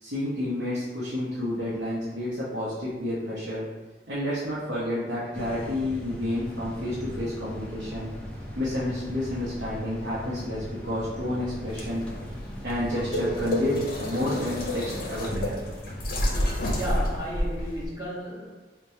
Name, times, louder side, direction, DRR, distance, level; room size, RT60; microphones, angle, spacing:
voice 1, 0.0-3.7 4.1-8.1 8.6-12.1 12.6-15.6, left 1 dB, 70° right, -9 dB, 0.8 m, -30 dB
sound 1, 5.3-17.3, equal, 5° left, 0.4 m, -40 dB
sound 2, 11.7-17.9, equal, 50° left, 0.6 m, -30 dB
voice 2, 16.3-18.5, equal, 20° right, -7 dB, 1.0 m, -34 dB
4.4 x 2.2 x 2.7 m, 1.3 s
head